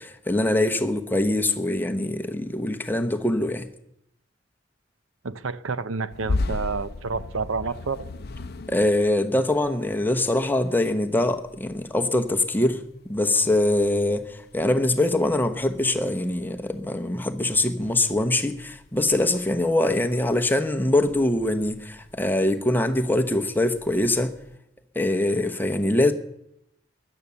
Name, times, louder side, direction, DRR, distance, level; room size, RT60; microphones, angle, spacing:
voice 1, 0.0-3.7 8.7-24.3 24.9-26.1, left 1 dB, 10° left, 0.9 m, -23 dB
voice 2, 5.2-8.1, right 4 dB, 85° right, 0.7 m, -29 dB
sound 1, 6.1-16.8 17.1-24.6, left 2 dB, 50° left, 0.6 m, -38 dB
15.5 x 11.0 x 6.9 m
head